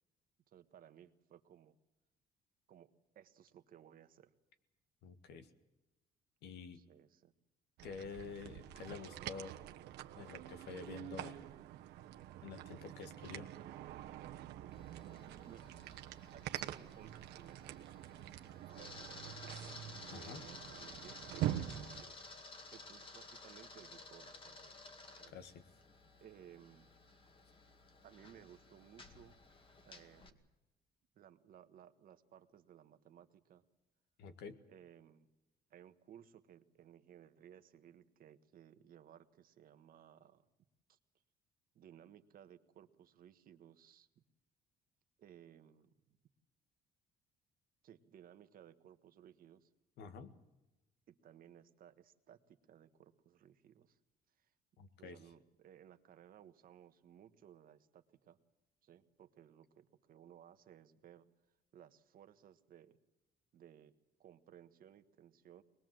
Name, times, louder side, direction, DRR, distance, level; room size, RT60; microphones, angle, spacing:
voice 1, 0.5-1.8 2.7-4.3 6.7-7.3 15.4-16.0 16.3-18.0 18.7-19.8 20.1-24.8 25.2-25.3 26.2-26.9 28.0-29.4 29.8-30.4 31.1-33.6 34.7-35.3 35.7-40.5 40.9-41.0 41.7-44.2 45.2-46.2 47.8-49.7 51.1-54.0 54.4-54.5 55.0-58.4 58.8-61.3 61.7-63.0 63.5-63.9 64.2-65.6, right 10 dB, 60° right, 9 dB, 1.5 m, -60 dB
voice 2, 5.0-5.5 6.4-6.8 7.8-9.7 10.2-11.5 12.4-13.5 20.1-20.4 25.3-25.6 34.2-34.6 50.0-50.3 54.8-55.2, left 5 dB, 80° left, 9 dB, 2.0 m, -49 dB
sound 1, 7.8-22.0, right 13 dB, 80° right, 1.2 m, -45 dB
Camera, 14.7-30.3, left 3 dB, 30° left, 2.2 m, -55 dB
23.0 x 21.0 x 7.8 m, 0.99 s
cardioid pair, 110°, 17 cm